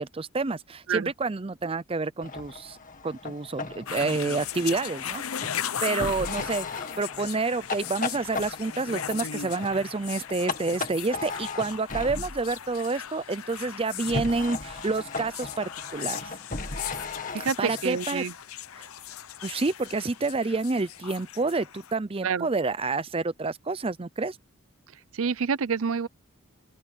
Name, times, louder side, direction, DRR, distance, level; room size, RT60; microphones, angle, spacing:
voice 1, 0.0-2.8 3.0-5.2 5.8-16.2 17.6-18.2 18.8-18.9 19.4-24.4, right 3 dB, 25° right, 0.5 m, -29 dB
sound 1, 2.2-12.5 14.0-18.1, left 3 dB, 40° left, 2.1 m, -37 dB
sound 2, 3.9-21.9, left 9 dB, 90° left, 0.8 m, -38 dB
voice 2, 17.3-18.3 22.2-22.5 25.1-26.1, right 6 dB, 75° right, 0.6 m, -27 dB
open air
head